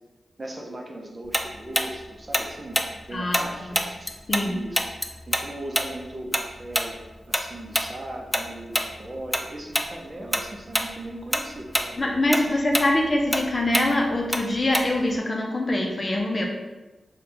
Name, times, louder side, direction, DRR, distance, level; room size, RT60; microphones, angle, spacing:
voice 1, 0.4-4.1 4.4-4.9 5.3-7.0 7.3-12.6, right 1 dB, 35° right, 0 dB, 0.7 m, -38 dB
Tick-tock, 1.3-4.5 4.7-9.5 9.7-9.9 10.3-10.9 11.2-15.2, equal, 5° left, 0.4 m, -26 dB
voice 2, 3.1-3.8 4.3-4.6 12.0-16.4, left 1 dB, 45° left, 1 dB, 0.6 m, -24 dB
4.1 x 2.3 x 3.3 m, 1.1 s
cardioid pair, 50°, 0 cm